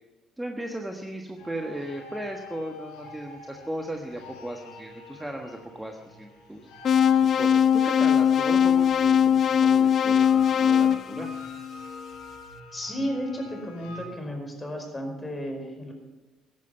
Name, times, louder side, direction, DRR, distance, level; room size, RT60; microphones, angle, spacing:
voice 1, 0.4-6.7 7.2-11.3, right 1 dB, 10° right, 2 dB, 1.4 m, -36 dB
sound 1, 1.4-14.1, left 2 dB, 90° left, 3.9 m, -45 dB
sound 2, 6.8-12.0, left 8 dB, 55° left, 0.5 m, -21 dB
voice 2, 12.7-15.9, equal, 20° left, 3 dB, 4.9 m, -33 dB
14.5 x 11.5 x 5.6 m, 1.1 s
supercardioid pair, 85°, 0 cm